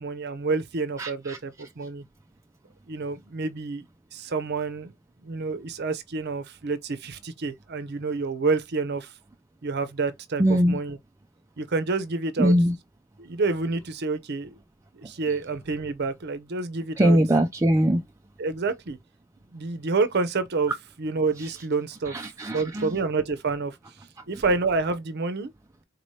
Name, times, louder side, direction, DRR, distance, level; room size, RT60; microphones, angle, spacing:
voice 1, 0.0-2.0 2.9-3.8 4.1-4.9 5.2-9.1 9.6-11.0 11.6-12.5 13.2-14.6 14.9-17.2 18.4-19.0 19.5-20.7 21.0-22.1 22.5-23.8 24.3-25.5, right 4 dB, 55° right, 0.6 m, -28 dB
voice 2, 1.0-1.4 10.4-10.8 12.4-12.7 17.0-18.0 22.1-22.9, equal, 15° right, 0.3 m, -21 dB
4.1 x 3.2 x 2.7 m
head